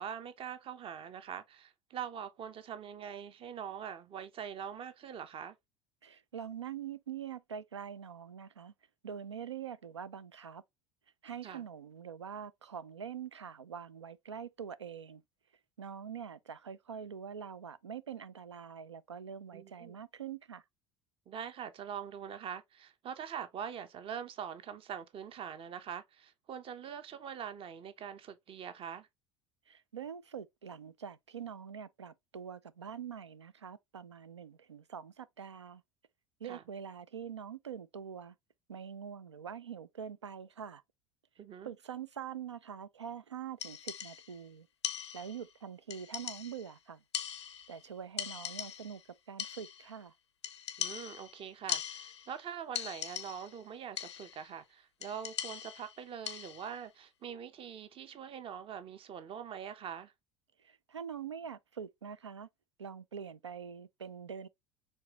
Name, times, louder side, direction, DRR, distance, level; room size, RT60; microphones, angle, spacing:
voice 1, 0.0-5.5 11.4-11.6 19.5-20.0 21.3-29.1 36.4-36.6 41.4-41.7 50.8-60.1, right 8 dB, 40° right, 0.9 m, -43 dB
voice 2, 6.0-8.7 9.0-10.6 11.2-15.2 15.8-20.6 29.7-35.8 36.4-38.3 38.7-40.8 41.6-44.7 45.1-47.0 47.7-49.0 49.3-50.1 60.6-62.5 62.8-64.5, right 8 dB, 90° right, 0.5 m, -44 dB
sound 1, 43.6-44.4 44.8-45.5 45.9-46.7 47.1-47.9 48.2-49.0 49.4-49.9 50.4-52.4 52.7-53.6 54.0-54.5 55.0-56.8, left 9 dB, 85° left, 0.5 m, -41 dB
4.6 x 3.6 x 3.0 m
figure-of-eight pair, 70°, 14 cm